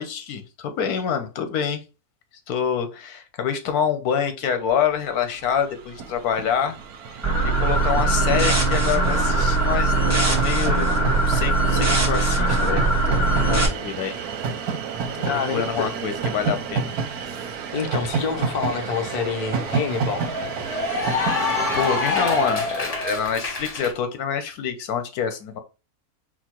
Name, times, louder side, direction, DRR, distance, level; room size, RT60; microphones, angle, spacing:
voice 1, 0.0-1.8 2.5-6.8 7.4-10.0 10.2-14.2 15.3-16.9 21.7-25.6, left 7 dB, 90° left, 1.3 m, -26 dB
Train, 5.0-5.1 5.3-23.7, right 5 dB, 85° right, 1.2 m, -30 dB
sound 1, 7.2-13.7, right 2 dB, 15° right, 0.7 m, -20 dB
voice 2, 15.3-15.9 17.7-20.3, left 5 dB, 50° left, 0.5 m, -27 dB
Cheering / Applause, 18.5-23.9, left 3 dB, 30° left, 0.9 m, -27 dB
4.4 x 2.2 x 4.2 m
omnidirectional pair, 1.6 m